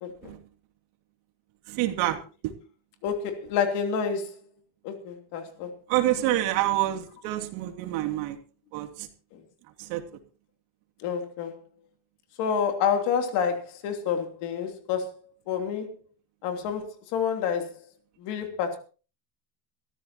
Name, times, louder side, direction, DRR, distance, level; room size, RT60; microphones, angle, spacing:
voice 1, 0.0-0.3 3.0-4.3 4.8-5.7 9.3-9.4 11.0-11.6 12.4-15.1 15.5-15.9 16.4-17.8 18.2-18.8, left 7 dB, 60° left, 3.2 m, -28 dB
voice 2, 1.7-2.5 5.9-8.4 8.7-9.1 9.8-10.0, right 14 dB, 85° right, 2.9 m, -27 dB
22.5 x 14.0 x 2.9 m
cardioid pair, 175°, 46 cm